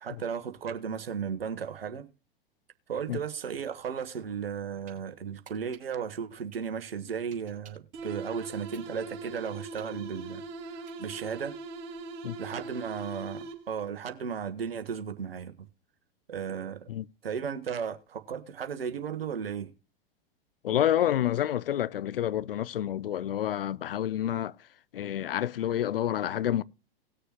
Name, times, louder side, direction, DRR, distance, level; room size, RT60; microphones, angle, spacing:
voice 1, 0.0-2.1 2.9-10.4 10.8-11.6 12.4-15.7 16.3-16.9 17.2-19.7, right 7 dB, 75° right, 1.4 m, -35 dB
sound 1, 4.8-5.0 5.4-7.9 8.3-11.4, right 8 dB, 25° right, 3.6 m, -57 dB
sound 2, 7.9-13.9, right 3 dB, 45° right, 2.8 m, -41 dB
voice 2, 20.6-24.5 24.9-26.6, left 11 dB, 70° left, 0.7 m, -28 dB
18.5 x 6.7 x 3.0 m
figure-of-eight pair, 100°, 29 cm